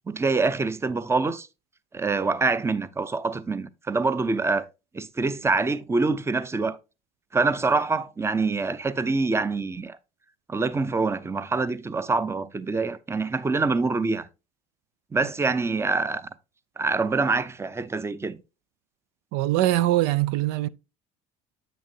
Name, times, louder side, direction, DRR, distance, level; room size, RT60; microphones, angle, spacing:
voice 1, 0.1-1.5 1.9-4.7 4.9-6.8 7.3-10.0 10.5-14.3 15.1-16.3 16.8-18.4, right 3 dB, 15° right, 0.6 m, -25 dB
voice 2, 19.3-20.7, right 15 dB, 75° right, 0.4 m, -22 dB
8.2 x 6.2 x 2.8 m
supercardioid pair, 90°, 18 cm